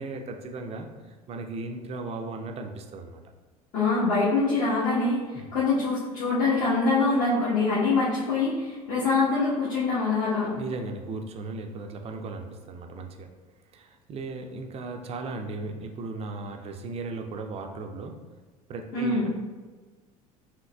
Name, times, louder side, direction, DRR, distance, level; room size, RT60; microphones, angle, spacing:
voice 1, 0.0-3.2 5.3-5.5 10.5-13.3 13.7-18.2 18.7-19.3, right 3 dB, 30° right, 4 dB, 0.5 m, -36 dB
voice 2, 3.7-10.5 18.9-19.3, left 3 dB, 45° left, -11 dB, 1.2 m, -24 dB
4.5 x 2.9 x 2.3 m, 1.4 s
figure-of-eight pair, 70°, 19 cm